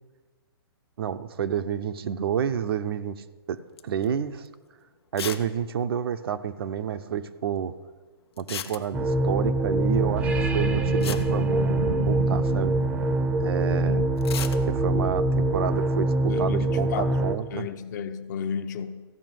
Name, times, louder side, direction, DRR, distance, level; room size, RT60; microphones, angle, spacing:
voice 1, 1.0-4.5 5.1-7.7 8.4-12.8 13.4-14.1 14.6-17.7, right 8 dB, 65° right, 0.7 m, -29 dB
Duct Tape, 3.8-4.1 4.5-4.6 5.2-5.5 5.8-5.9 6.0-6.1 8.4-9.2 10.6-10.7 11.0-12.2 14.2-14.6, left 8 dB, 75° left, 1.0 m, -35 dB
sound 1, 8.9-17.4, right 2 dB, 10° right, 0.6 m, -24 dB
sound 2, 9.8-15.1, right 4 dB, 85° right, 1.5 m, -34 dB
voice 2, 16.3-17.1 17.5-19.0, left 7 dB, 45° left, 0.8 m, -33 dB
14.5 x 5.6 x 9.2 m
hypercardioid pair, 160°, 13 cm